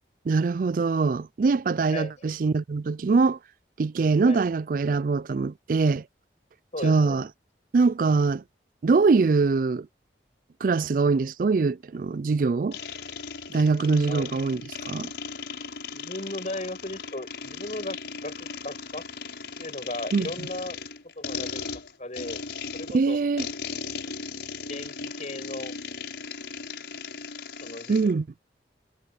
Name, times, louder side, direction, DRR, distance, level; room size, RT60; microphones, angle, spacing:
voice 1, 0.3-3.4 3.8-6.0 6.8-7.2 7.7-8.4 8.8-9.9 10.6-12.8 13.5-14.6 14.9-15.1 20.1-20.3 22.9-23.5 27.9-28.3, right 4 dB, 50° right, 0.3 m, -23 dB
voice 2, 1.9-2.2 4.2-4.5 6.7-7.3 14.0-14.4 15.9-19.1 19.6-20.8 21.2-21.7 22.0-22.4 22.7-23.3 24.7-25.8 27.6-28.2, left 1 dB, 40° left, 5.6 m, -36 dB
sound 1, 12.7-28.1, left 5 dB, 80° left, 5.5 m, -37 dB
head